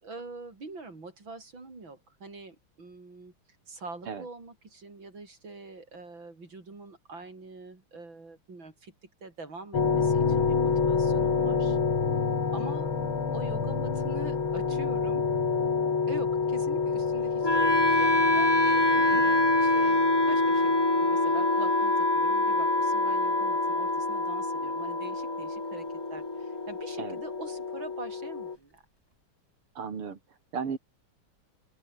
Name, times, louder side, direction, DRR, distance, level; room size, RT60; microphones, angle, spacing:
voice 1, 0.0-3.3 3.7-11.8 12.5-12.9 13.3-15.3 16.1-28.8, right 3 dB, 60° right, 6.1 m, -44 dB
sound 1, 9.7-28.6, left 5 dB, 70° left, 3.8 m, -30 dB
Wind instrument woodwind instrument, 17.4-27.4, left 1 dB, 10° left, 2.2 m, -25 dB
voice 2, 29.8-30.2 30.5-30.8, right 6 dB, 90° right, 3.7 m, -34 dB
open air
omnidirectional pair, 2.4 m